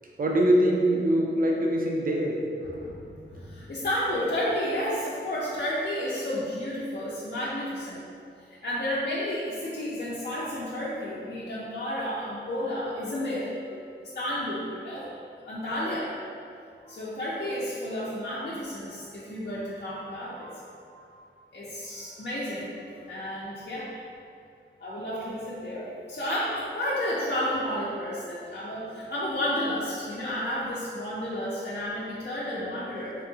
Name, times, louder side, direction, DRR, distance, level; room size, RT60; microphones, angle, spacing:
voice 1, 0.2-2.4, right 1 dB, 45° right, 0 dB, 0.5 m, -23 dB
voice 2, 2.6-8.0 8.4-13.5 14.1-15.1 15.5-16.2 16.8-21.2 21.5-22.7 23.1-23.9 24.8-33.2, left 1 dB, 55° left, -8 dB, 0.6 m, -32 dB
3.6 x 2.5 x 2.7 m, 2.4 s
cardioid pair, 55°, 20 cm